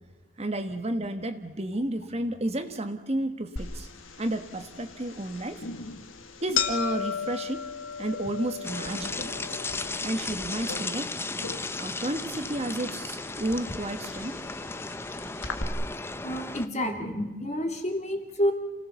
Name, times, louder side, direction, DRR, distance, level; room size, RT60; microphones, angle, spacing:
voice 1, 0.4-3.9 4.2-5.6 6.4-7.6 8.0-9.3 10.0-11.1 11.8-14.4, right 1 dB, 30° right, 8 dB, 1.3 m, -31 dB
sound 1, 3.6-15.6, left 6 dB, 85° left, 2.0 m, -37 dB
sound 2, 8.6-16.7, left 3 dB, 10° left, 0.7 m, -35 dB
voice 2, 16.2-18.5, equal, 35° left, 5 dB, 2.4 m, -29 dB
28.5 x 17.5 x 7.1 m, 1.2 s
head